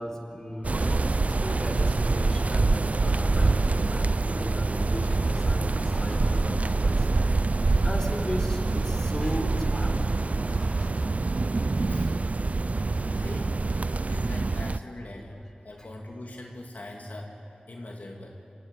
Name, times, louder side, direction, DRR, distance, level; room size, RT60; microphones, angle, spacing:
voice 1, 0.0-7.4 7.8-10.2 10.5-11.0 11.2-11.4 15.8-15.9, equal, 15° left, 1 dB, 3.9 m, -36 dB
sound 1, 0.6-14.8, right 3 dB, 55° right, 0.4 m, -25 dB
voice 2, 13.1-13.6 14.1-17.3 17.7-18.4, left 1 dB, 70° left, 0 dB, 2.3 m, -41 dB
27.0 x 15.0 x 9.7 m, 2.8 s
wide cardioid pair, 70°, 3 cm